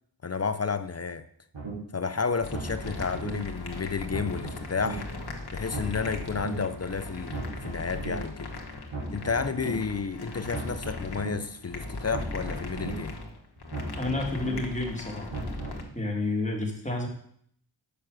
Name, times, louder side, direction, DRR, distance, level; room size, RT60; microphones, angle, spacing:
voice 1, 0.2-1.3 1.9-5.1 5.5-8.5 9.1-13.2, left 5 dB, 35° left, 12 dB, 0.5 m, -31 dB
sound 1, 1.5-1.7 2.4-3.3 4.0-4.9 5.6-6.5 7.2-8.1 8.8-9.7 10.4-11.3 12.0-12.9 13.6-14.5 15.2-15.8, right 2 dB, 75° right, 4.1 m, -37 dB
sound 2, 2.4-15.8, left 2 dB, 55° left, 1.5 m, -39 dB
voice 2, 14.0-15.3 15.9-17.1, left 2 dB, 15° left, -1 dB, 2.3 m, -30 dB
6.9 x 5.8 x 6.3 m, 0.65 s
wide cardioid pair, 65°, 45 cm